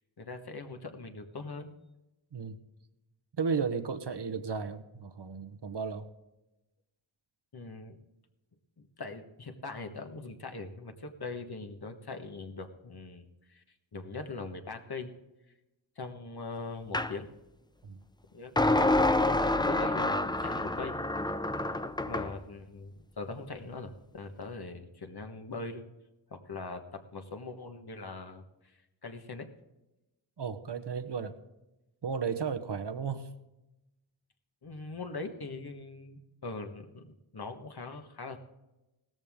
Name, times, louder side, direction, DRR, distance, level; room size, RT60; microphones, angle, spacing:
voice 1, 0.2-1.7 7.5-8.0 9.0-13.6 13.9-15.1 16.0-17.3 18.3-20.9 22.0-25.8 26.3-28.4 29.0-29.5 34.6-38.4, left 3 dB, 50° left, 6 dB, 1.4 m, -41 dB
voice 2, 3.4-6.0 17.8-18.0 30.4-31.3 32.0-33.3, right 5 dB, 55° right, 10 dB, 1.1 m, -34 dB
sound 1, 16.9-17.1 18.6-22.3, left 2 dB, 10° left, 0.5 m, -27 dB
16.5 x 13.5 x 3.7 m, 0.98 s
wide cardioid pair, 75°, 49 cm